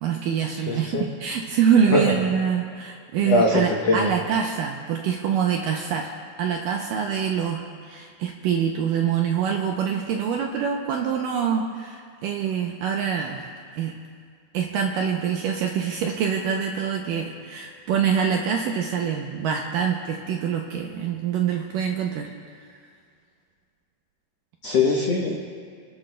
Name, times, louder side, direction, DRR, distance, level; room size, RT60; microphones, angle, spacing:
voice 1, 0.0-6.1 6.4-13.5 13.8-13.9 14.5-22.8, right 7 dB, 80° right, 1 dB, 2.0 m, -25 dB
voice 2, 0.7-1.0 1.9-2.0 3.2-3.6 3.9-4.0 24.6-25.3, left 3 dB, 90° left, -1 dB, 1.4 m, -20 dB
30.0 x 12.5 x 2.3 m, 2.1 s
omnidirectional pair, 4.6 m